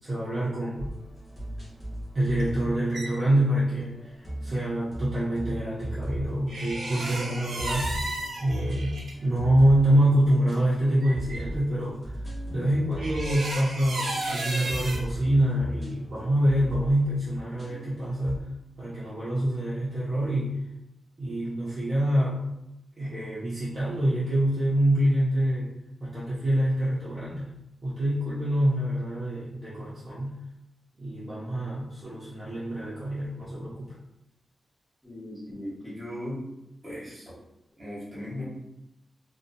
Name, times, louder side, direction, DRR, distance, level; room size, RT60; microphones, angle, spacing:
voice 1, 0.0-0.9 2.1-8.0 8.4-12.1 12.5-18.5 18.8-20.6 21.2-22.5 23.0-25.7 26.0-27.5 27.8-30.4 31.0-33.9, right 1 dB, 35° right, -9 dB, 0.6 m, -26 dB
sound 1, 0.8-18.4, equal, 20° left, 1.0 m, -38 dB
sound 2, 2.4-3.1 6.5-9.1 10.2-10.3 10.5-10.6 11.0-11.4 13.0-15.0, right 1 dB, 90° right, 0.6 m, -33 dB
voice 2, 35.0-36.4 36.8-37.3 37.8-38.4, left 1 dB, 15° right, -8 dB, 1.1 m, -37 dB
2.6 x 2.1 x 2.6 m, 0.86 s
wide cardioid pair, 155°, 0 cm